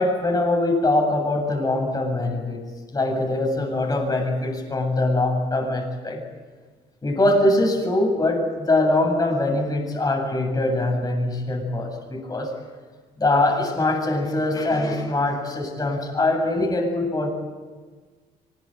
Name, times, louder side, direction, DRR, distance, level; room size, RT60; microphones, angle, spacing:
voice 1, 0.0-2.6 2.9-6.2 7.0-12.5 13.2-17.3, left 2 dB, 20° left, 2 dB, 7.7 m, -22 dB
24.5 x 20.5 x 9.0 m, 1.5 s
cardioid pair, 110°, 17 cm